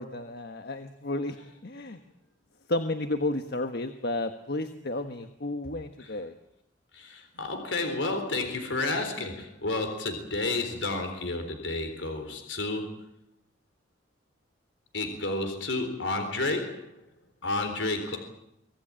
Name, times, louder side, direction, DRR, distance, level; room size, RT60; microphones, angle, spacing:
voice 1, 0.0-1.4 1.6-2.0 2.7-6.3, left 2 dB, 60° left, 8 dB, 1.3 m, -32 dB
voice 2, 6.9-12.9 14.9-16.9 17.4-18.2, left 2 dB, 90° left, 6 dB, 4.0 m, -31 dB
25.5 x 18.0 x 8.8 m, 0.79 s
head